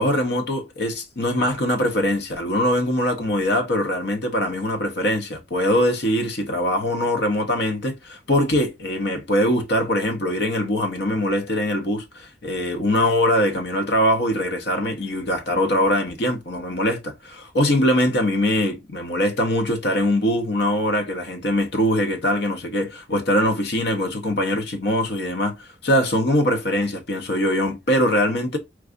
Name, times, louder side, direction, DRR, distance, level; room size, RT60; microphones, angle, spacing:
voice 1, 0.0-28.6, left 1 dB, 55° left, 0.8 m, -22 dB
4.6 x 2.4 x 2.4 m
head